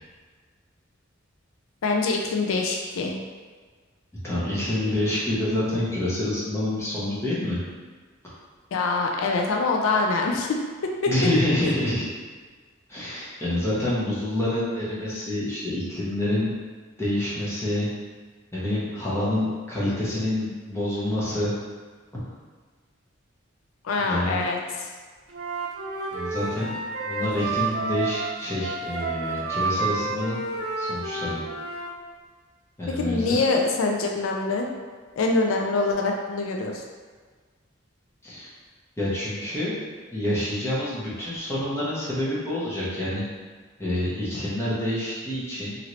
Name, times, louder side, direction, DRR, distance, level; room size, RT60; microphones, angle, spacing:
voice 1, 1.8-3.2 8.7-10.6 11.0-11.1 23.8-24.9 32.9-34.7 35.2-36.8, left 3 dB, 90° left, 1 dB, 0.4 m, -24 dB
voice 2, 4.2-7.6 8.2-8.3 11.1-12.1 12.9-16.5 17.0-17.9 18.5-21.5 22.1-22.3 24.0-24.4 26.1-30.4 30.8-31.4 32.8-33.4 38.2-38.5 39.0-39.7 40.1-43.2 43.8-45.8, left 1 dB, 15° left, -8 dB, 0.8 m, -27 dB
Wind instrument woodwind instrument, 25.3-31.9, right 3 dB, 60° right, 0.6 m, -30 dB
2.8 x 2.6 x 3.0 m, 1.5 s
head